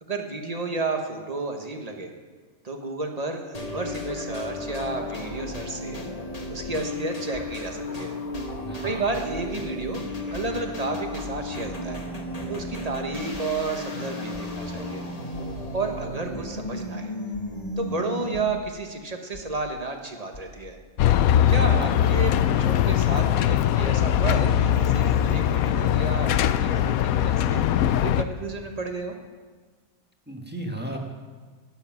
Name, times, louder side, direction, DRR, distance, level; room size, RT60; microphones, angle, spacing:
voice 1, 0.0-2.1 2.6-6.0 6.5-8.2 8.8-10.0 10.3-12.0 12.5-15.0 15.7-17.1 17.8-20.8 21.5-29.1, right 3 dB, 30° right, 4 dB, 1.3 m, -32 dB
sound 1, 3.5-18.7, left 1 dB, 30° left, 1.3 m, -34 dB
sound 2, 6.6-6.7 7.3-7.7 8.3-8.7 9.3-9.7 10.3-10.7 11.3-11.7 12.3-12.7 13.3-13.7 14.3-14.7 15.3-15.7 16.3-16.7 17.3-17.7 18.3-18.7 19.3-19.7 20.3-20.7 21.3-21.7 22.3-22.7 23.2-23.3, left 3 dB, 60° left, 2.7 m, -45 dB
voice 2, 8.7-9.1 21.6-22.1 30.3-31.0, right 1 dB, 5° right, 1 dB, 1.4 m, -34 dB
sound 3, 21.0-28.2, left 10 dB, 85° left, 1.0 m, -21 dB
13.0 x 9.9 x 6.1 m, 1.4 s
omnidirectional pair, 1.5 m